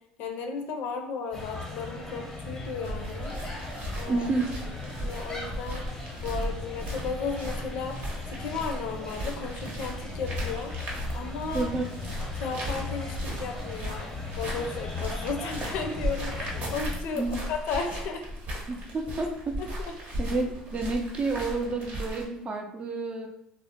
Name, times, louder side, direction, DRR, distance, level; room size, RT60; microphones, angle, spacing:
voice 1, 0.2-3.3 4.0-4.3 5.0-5.9 6.2-8.0 8.3-10.7 11.1-11.7 12.3-18.2 19.6-19.9, left 5 dB, 65° left, 4 dB, 0.4 m, -34 dB
sound 1, 1.3-17.0, left 3 dB, 15° left, 0.6 m, -38 dB
sound 2, 2.8-22.2, equal, 50° right, 0.8 m, -36 dB
voice 2, 4.1-4.6 11.5-11.8 17.1-17.4 18.7-19.6 20.2-23.3, right 3 dB, 35° right, 4 dB, 0.4 m, -30 dB
2.4 x 2.1 x 2.7 m, 0.76 s
supercardioid pair, 90°, 3 cm